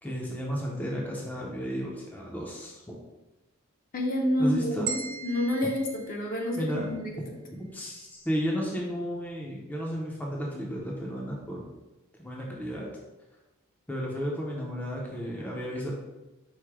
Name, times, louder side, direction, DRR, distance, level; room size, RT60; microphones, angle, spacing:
voice 1, 0.0-3.0 4.4-4.9 6.6-6.9 7.5-11.6 12.2-12.9 13.9-15.9, equal, 10° left, -3 dB, 0.5 m, -33 dB
voice 2, 3.9-7.4, left 1 dB, 45° left, 0 dB, 0.7 m, -29 dB
sound 1, 4.9-7.0, right 6 dB, 85° right, 0.7 m, -39 dB
4.6 x 2.1 x 4.6 m, 1.0 s
head